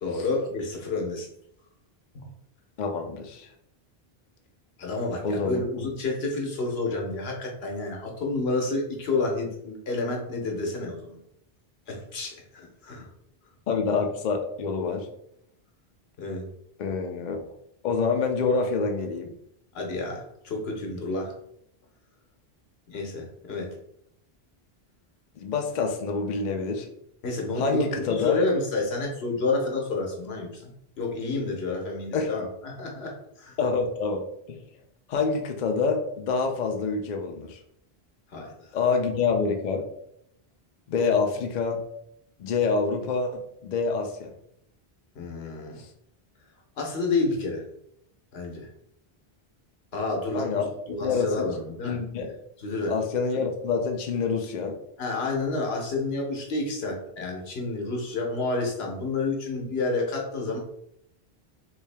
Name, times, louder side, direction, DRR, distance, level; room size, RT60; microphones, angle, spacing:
voice 1, 0.0-1.3 4.8-11.2 11.9-13.1 16.2-16.5 19.7-21.3 22.9-23.7 27.2-33.5 38.3-38.7 45.1-45.8 46.8-47.6 48.3-48.7 49.9-52.0 52.6-52.9 55.0-60.6, left 3 dB, 80° left, 0 dB, 1.1 m, -29 dB
voice 2, 2.8-3.5 5.2-5.9 13.7-15.1 16.8-17.5 17.8-19.3 25.4-26.9 27.6-28.4 32.1-32.3 33.6-34.6 35.1-37.6 38.7-39.8 40.9-41.8 42.4-44.3 45.8-45.9 50.3-50.6 51.0-51.4 51.9-52.3 52.9-54.8, left 4 dB, 55° left, 3 dB, 0.6 m, -27 dB
3.3 x 2.7 x 3.3 m, 0.74 s
omnidirectional pair, 1.0 m